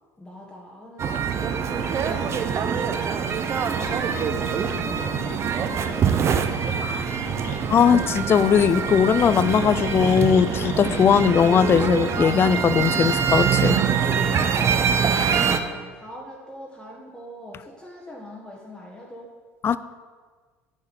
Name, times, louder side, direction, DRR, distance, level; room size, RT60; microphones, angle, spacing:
voice 1, 0.2-6.6 14.5-19.3, left 1 dB, 10° left, -3 dB, 1.4 m, -42 dB
sound 1, 1.0-15.6, right 7 dB, 35° right, 0.7 m, -24 dB
sound 2, 1.8-14.5, left 3 dB, 50° left, 1.3 m, -37 dB
voice 2, 7.7-13.8 19.6-19.8, left 7 dB, 30° left, 14 dB, 0.4 m, -19 dB
8.0 x 4.7 x 6.9 m, 1.5 s
hypercardioid pair, 75°, 8 cm